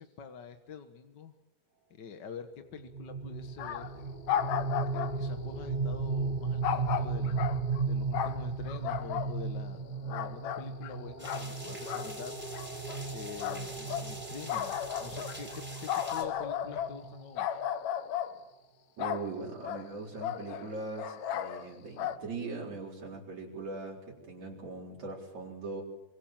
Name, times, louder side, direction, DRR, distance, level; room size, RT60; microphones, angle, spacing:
voice 1, 0.0-1.3 1.9-3.9 4.9-7.5 7.9-12.4 13.1-17.6, left 6 dB, 50° left, 7 dB, 1.5 m, -46 dB
sound 1, 2.8-17.6, right 4 dB, 35° right, 0.7 m, -36 dB
sound 2, 3.6-4.0 4.3-5.2 6.6-7.8 8.1-9.3 9.7-10.9 11.2-11.5 11.9-12.2 12.5-13.0 13.4-14.1 14.5-17.0 17.4-18.4 19.0-19.3 19.6-19.9 20.2-21.7 22.0-22.2, left 10 dB, 70° left, 2.4 m, -34 dB
sound 3, 11.2-16.2, equal, 5° right, 4.4 m, -46 dB
voice 2, 19.0-25.8, right 3 dB, 70° right, -3 dB, 5.5 m, -40 dB
25.5 x 25.0 x 7.6 m, 0.95 s
omnidirectional pair, 3.3 m